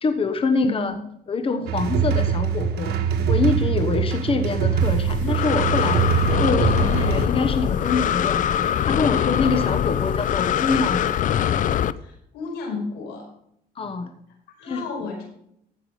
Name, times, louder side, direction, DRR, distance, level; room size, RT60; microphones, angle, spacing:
voice 1, 0.0-0.9 1.3-3.0 3.3-6.0 6.4-11.2 13.8-14.1 14.7-14.9, left 4 dB, 35° left, 7 dB, 1.2 m, -25 dB
sound 1, 1.7-7.3, right 6 dB, 75° right, 1.5 m, -23 dB
Breathing, 4.8-11.9, left 10 dB, 50° left, 0.6 m, -23 dB
voice 2, 12.0-13.3 14.6-15.2, left 4 dB, 90° left, 1 dB, 5.1 m, -32 dB
15.0 x 6.1 x 4.9 m, 0.72 s
cardioid pair, 110°, 17 cm